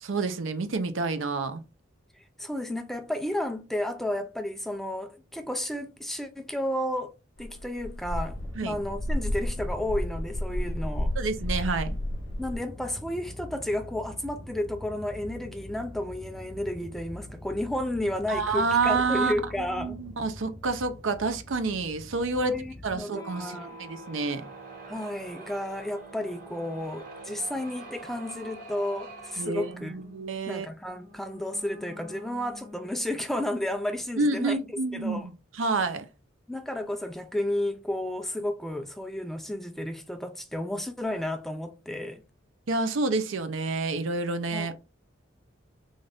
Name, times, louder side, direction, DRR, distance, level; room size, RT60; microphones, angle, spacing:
voice 1, 0.0-1.6 8.6-8.8 11.2-12.0 18.3-19.4 19.7-22.5 22.8-24.4 29.4-30.7 34.2-36.1 42.7-44.7, right 3 dB, 75° right, 0.6 m, -28 dB
voice 2, 2.2-7.1 7.4-11.1 12.4-20.0 22.4-23.8 24.9-29.9 30.5-35.3 36.5-42.2 44.5-44.7, left 1 dB, ahead, 0.4 m, -32 dB
sound 1, 7.4-12.6, left 1 dB, 65° left, 0.7 m, -32 dB
sound 2, 8.3-23.0, left 1 dB, 15° right, 1.2 m, -44 dB
sound 3, 23.0-33.4, right 2 dB, 45° right, 1.3 m, -45 dB
4.0 x 2.5 x 3.3 m
head